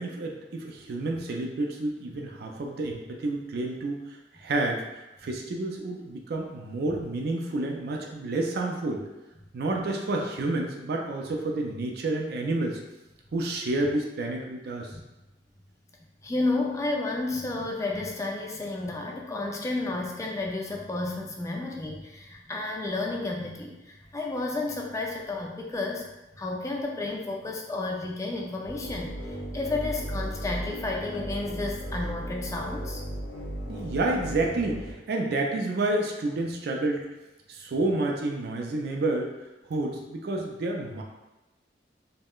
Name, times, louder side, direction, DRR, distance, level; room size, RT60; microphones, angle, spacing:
voice 1, 0.0-4.8 5.2-9.0 9.5-12.8 13.3-14.9 33.7-37.0 37.5-39.3 39.7-41.0, right 2 dB, 60° right, 1 dB, 0.4 m, -29 dB
voice 2, 16.2-26.1 26.3-33.0, left 2 dB, 15° left, 0 dB, 0.3 m, -32 dB
sound 1, 28.6-34.9, equal, 70° left, 0.7 m, -36 dB
3.5 x 2.1 x 2.3 m, 0.99 s
head